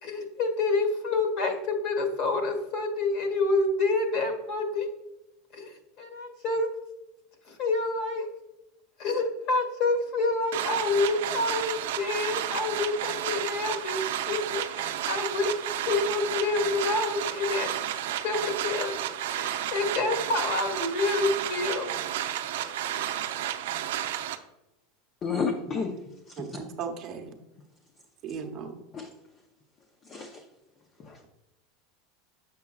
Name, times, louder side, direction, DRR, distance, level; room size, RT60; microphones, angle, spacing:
voice 1, 0.0-4.9 5.5-6.7 7.5-8.3 9.0-14.0 14.2-15.5 15.8-17.7 18.2-19.0 19.3-21.9 22.5-23.1, left 3 dB, 50° left, 5 dB, 1.9 m, -28 dB
sound 1, 10.5-24.4, right 11 dB, 85° right, 0.5 m, -32 dB
voice 2, 25.2-26.0 26.2-26.5 28.9-29.1 30.0-30.4 31.0-31.3, left 5 dB, 25° left, 4 dB, 0.6 m, -31 dB
voice 3, 26.4-27.3 28.2-28.8, right 6 dB, 40° right, 3 dB, 0.9 m, -36 dB
8.1 x 6.9 x 2.3 m, 0.92 s
supercardioid pair, 155°, 0 cm